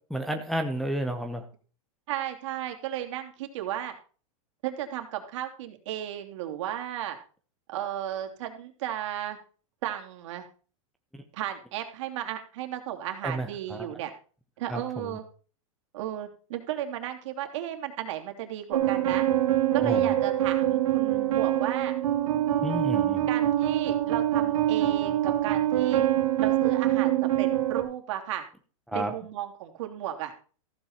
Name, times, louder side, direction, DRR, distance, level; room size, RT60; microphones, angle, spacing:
voice 1, 0.1-1.4 13.2-13.9 14.7-15.1 19.8-20.0 22.6-23.3 28.9-29.1, equal, ahead, 3 dB, 1.0 m, -31 dB
voice 2, 2.1-3.9 4.6-7.2 7.7-9.4 9.8-10.4 11.3-14.1 14.6-15.2 15.9-19.3 19.7-21.9 23.3-26.0 26.4-28.4 28.9-30.3, right 12 dB, 60° right, 4 dB, 2.8 m, -34 dB
sound 1, 18.7-27.8, right 12 dB, 85° right, 2.7 m, -25 dB
15.0 x 8.2 x 4.4 m, 0.38 s
supercardioid pair, 155°, 18 cm